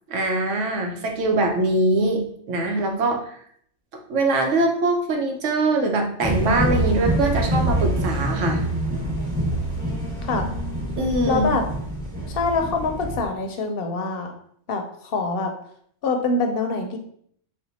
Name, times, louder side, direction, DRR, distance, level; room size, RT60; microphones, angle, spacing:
voice 1, 0.1-3.3 4.1-8.6 11.0-11.6, right 2 dB, 90° right, 3 dB, 1.1 m, -22 dB
sound 1, 6.2-13.3, right 1 dB, 20° right, 1.1 m, -25 dB
voice 2, 11.3-11.7 12.3-14.3 14.7-15.5 16.0-17.0, left 3 dB, 60° left, 4 dB, 0.7 m, -25 dB
4.3 x 2.2 x 4.0 m, 0.64 s
omnidirectional pair, 1.2 m